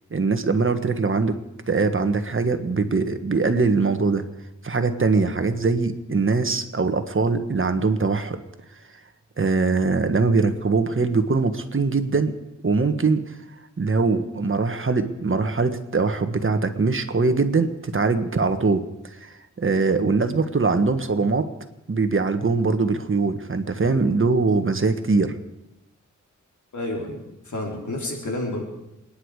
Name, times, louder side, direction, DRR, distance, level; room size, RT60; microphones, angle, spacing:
voice 1, 0.1-1.4 1.7-4.2 4.6-8.4 9.4-12.3 12.6-13.2 13.8-18.8 19.2-19.3 19.6-21.5 21.9-25.4, right 4 dB, 45° right, 8 dB, 1.5 m, -22 dB
voice 2, 26.7-28.7, left 1 dB, 75° left, 0 dB, 3.7 m, -30 dB
27.5 x 10.0 x 4.9 m, 0.90 s
cardioid pair, 65°, 30 cm